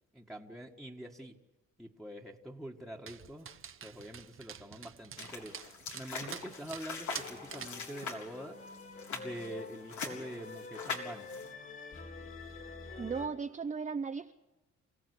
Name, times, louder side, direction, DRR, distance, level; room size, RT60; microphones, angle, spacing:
voice 1, 0.1-1.4 1.8-3.5 3.8-8.6 9.1-11.3, right 1 dB, ahead, -1 dB, 1.7 m, -45 dB
Dog, 3.1-7.9, right 8 dB, 45° right, 1.1 m, -47 dB
sound 1, 5.2-11.5, left 4 dB, 75° left, 4.0 m, -43 dB
sound 2, 7.1-13.3, left 4 dB, 45° left, 4.1 m, -47 dB
voice 2, 13.0-14.3, right 5 dB, 25° right, 7 dB, 0.8 m, -36 dB
28.5 x 16.5 x 8.3 m, 1.1 s
cardioid pair, 90°, 30 cm